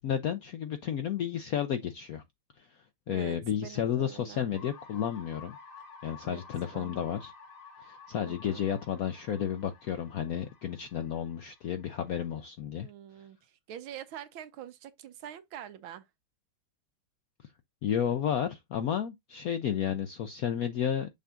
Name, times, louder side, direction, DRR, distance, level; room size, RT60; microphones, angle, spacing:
voice 1, 0.0-2.2 2.6-2.7 3.1-5.6 6.0-7.3 7.8-12.9 17.8-21.1, left 9 dB, 70° left, 0.8 m, -32 dB
voice 2, 3.1-4.5 6.2-6.4 6.7-7.0 8.3-8.6 12.8-16.0, right 10 dB, 80° right, 1.6 m, -45 dB
sound 1, 4.5-12.4, left 5 dB, 90° left, 2.5 m, -52 dB
6.9 x 2.5 x 5.6 m
omnidirectional pair, 2.2 m